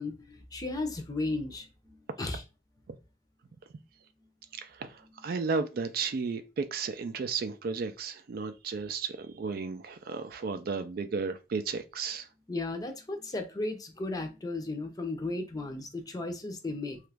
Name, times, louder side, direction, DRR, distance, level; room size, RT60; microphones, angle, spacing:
voice 1, 0.0-2.4 12.5-17.0, left 2 dB, 20° left, 0.5 m, -35 dB
voice 2, 4.6-12.3, right 5 dB, 55° right, 0.4 m, -34 dB
2.9 x 2.4 x 3.4 m
head